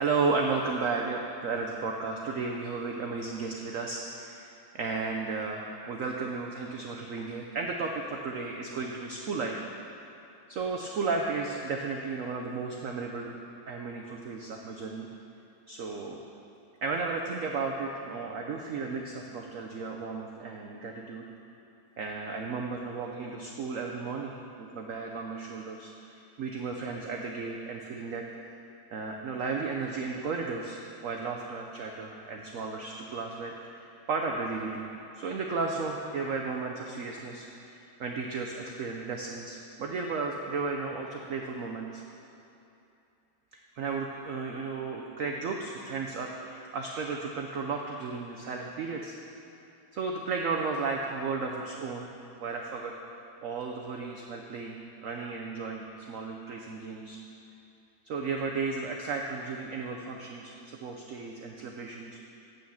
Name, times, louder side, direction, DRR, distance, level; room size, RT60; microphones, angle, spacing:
voice 1, 0.0-9.6 10.5-13.3 13.7-15.1 15.7-16.2 16.8-21.3 22.0-28.5 28.9-42.0 43.5-49.2 49.9-52.1 52.4-52.9 53.4-57.2 58.0-62.2, right 4 dB, 85° right, 1 dB, 0.7 m, -34 dB
8.5 x 6.5 x 7.1 m, 2.8 s
omnidirectional pair, 2.2 m